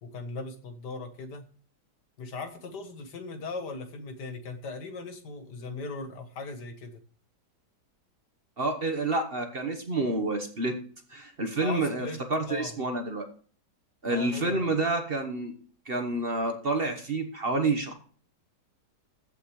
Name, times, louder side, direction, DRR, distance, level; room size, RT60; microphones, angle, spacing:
voice 1, 0.0-1.4 2.2-7.0 11.6-12.8 14.1-14.7, left 3 dB, 75° left, 6 dB, 2.0 m, -38 dB
voice 2, 8.6-10.8 11.1-13.3 14.0-15.5 15.9-17.9, right 2 dB, 35° right, 6 dB, 1.2 m, -29 dB
14.5 x 6.0 x 3.2 m, 0.44 s
omnidirectional pair, 1.9 m